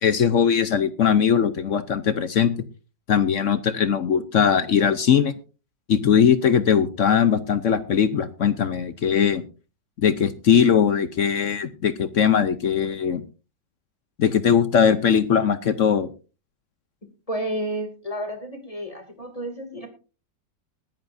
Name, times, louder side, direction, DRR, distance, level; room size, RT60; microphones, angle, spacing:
voice 1, 0.0-2.5 3.1-5.3 5.9-9.4 10.0-13.2 14.2-16.1, left 7 dB, 60° left, 13 dB, 0.9 m, -20 dB
voice 2, 17.3-19.9, right 1 dB, 20° left, 5 dB, 2.5 m, -31 dB
21.0 x 11.0 x 2.6 m, 0.34 s
omnidirectional pair, 1.9 m